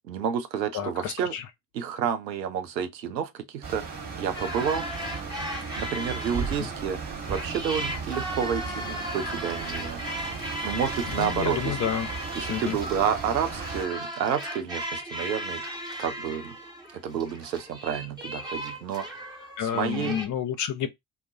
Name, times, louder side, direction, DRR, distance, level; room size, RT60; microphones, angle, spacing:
voice 1, 0.1-1.3 1.7-4.8 5.7-10.0 10.6-11.8 12.3-15.6 16.0-16.6 16.9-20.2, right 8 dB, 85° right, 0.6 m, -30 dB
voice 2, 0.7-1.4 6.3-6.7 11.1-12.1 12.5-12.8 19.6-20.9, left 9 dB, 40° left, 0.5 m, -30 dB
sound 1, 3.6-13.9, right 5 dB, 40° right, 1.2 m, -36 dB
sound 2, 4.3-6.8 7.2-20.3, equal, 10° right, 0.9 m, -36 dB
2.3 x 2.1 x 3.9 m
figure-of-eight pair, 55°, 49 cm